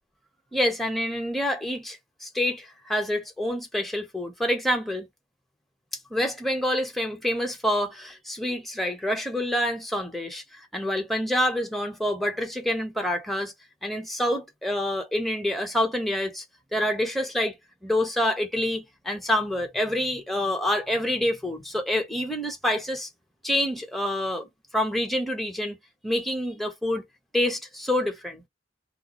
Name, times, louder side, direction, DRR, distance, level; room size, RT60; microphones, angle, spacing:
voice 1, 0.5-5.1 6.1-13.5 13.8-16.4 16.7-17.6 17.8-23.1 23.4-25.8 26.0-27.0 27.3-28.4, left 1 dB, ahead, 0.8 m, -27 dB
2.4 x 2.3 x 4.0 m
head